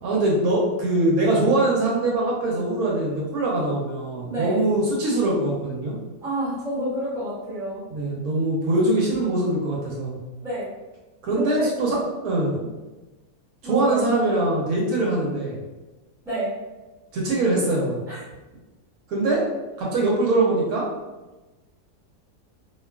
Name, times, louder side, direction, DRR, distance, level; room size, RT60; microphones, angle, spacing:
voice 1, 0.0-6.0 7.9-10.2 11.2-12.6 13.7-15.6 17.1-18.0 19.1-19.4 19.8-20.9, right 2 dB, 75° right, -3 dB, 1.0 m, -22 dB
voice 2, 4.3-4.6 6.2-7.8 10.4-10.7 11.3-11.7 13.6-14.0 16.2-16.5 18.1-18.2, right 1 dB, 5° right, -9 dB, 0.5 m, -28 dB
2.5 x 2.3 x 2.2 m, 1.1 s
omnidirectional pair, 1.7 m